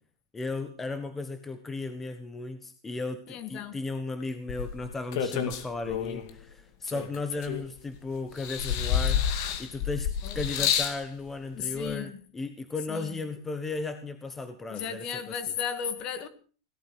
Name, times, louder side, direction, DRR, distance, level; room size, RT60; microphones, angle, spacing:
voice 1, 0.3-9.2 9.6-15.3, left 3 dB, 10° left, 1.3 m, -35 dB
voice 2, 3.3-3.8 10.2-10.7 11.5-12.2 12.9-13.2 14.7-16.3, left 8 dB, 35° left, 1.9 m, -35 dB
sound 1, 4.5-6.3 6.9-7.9 8.4-11.0 11.9-12.0, left 8 dB, 50° left, 2.3 m, -29 dB
17.5 x 13.0 x 6.2 m
supercardioid pair, 160°, 2 cm